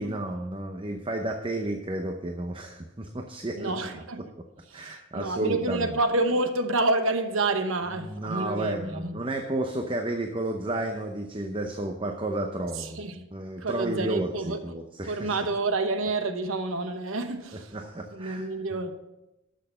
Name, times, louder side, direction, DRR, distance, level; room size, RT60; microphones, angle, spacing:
voice 1, 0.0-4.0 4.7-6.0 8.0-13.0 13.3-15.4 17.7-18.5, right 1 dB, 25° right, 0.7 m, -32 dB
voice 2, 3.6-4.2 4.7-9.2 12.8-13.2 13.6-14.6 15.1-17.8 18.1-18.9, right 2 dB, 80° right, 1.0 m, -28 dB
12.5 x 6.4 x 5.5 m
head